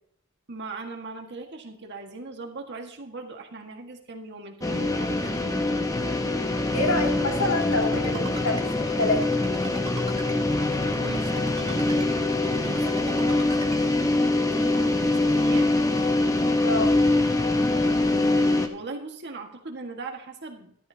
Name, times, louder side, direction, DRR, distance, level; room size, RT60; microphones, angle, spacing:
voice 1, 0.5-5.8 10.5-12.1 12.4-15.8 18.0-20.9, right 3 dB, 55° right, 3 dB, 1.7 m, -40 dB
sound 1, 4.6-18.7, left 2 dB, 15° left, 1.0 m, -24 dB
voice 2, 6.7-9.3 16.6-17.0, left 2 dB, 70° left, 1 dB, 2.6 m, -27 dB
Ringtone, 7.0-13.8, right 4 dB, 30° right, 1.7 m, -41 dB
14.0 x 12.0 x 2.8 m, 0.67 s
head